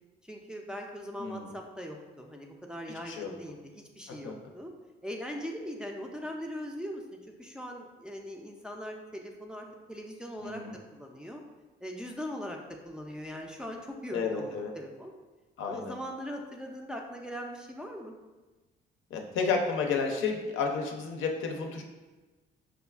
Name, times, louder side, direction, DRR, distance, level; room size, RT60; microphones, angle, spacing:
voice 1, 0.2-4.7 5.0-10.6 10.9-11.4 11.8-12.6 12.8-15.1 15.7-18.1, equal, 5° right, 0 dB, 0.4 m, -40 dB
voice 2, 10.4-10.7 14.1-14.7 15.6-15.9 19.1-21.8, left 5 dB, 75° left, 2 dB, 0.5 m, -31 dB
4.9 x 2.3 x 2.3 m, 1.2 s
cardioid pair, 90°, 20 cm